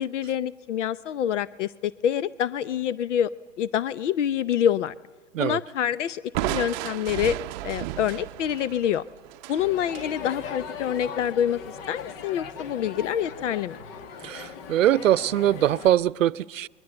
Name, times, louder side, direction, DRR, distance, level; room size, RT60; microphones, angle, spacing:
voice 1, 0.0-3.3 3.6-4.9 5.4-7.4 7.6-9.0 9.5-11.6 11.9-13.8, left 9 dB, 70° left, 0.8 m, -26 dB
Crushing, 6.3-10.1, right 17 dB, 35° right, 0.7 m, -33 dB
Crowd, 9.6-15.9, left 6 dB, 50° left, 1.9 m, -39 dB
voice 2, 14.2-16.7, right 12 dB, 85° right, 0.7 m, -22 dB
29.0 x 21.5 x 7.9 m
hypercardioid pair, 130°, 38 cm